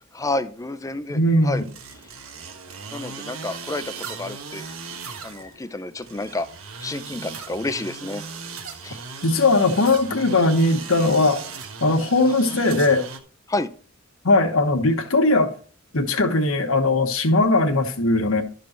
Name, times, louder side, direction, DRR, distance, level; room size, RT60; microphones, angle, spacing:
voice 1, 0.1-1.6 2.9-4.7 5.2-6.5 6.8-8.2 8.8-9.0 13.5-13.7, left 2 dB, 15° left, 0.5 m, -30 dB
voice 2, 1.1-1.6 9.2-11.4 11.8-13.1 14.2-15.5 15.9-18.4, left 2 dB, 75° left, 1.2 m, -19 dB
sound 1, 1.5-13.2, right 5 dB, 85° right, 1.3 m, -38 dB
12.0 x 5.2 x 4.4 m
head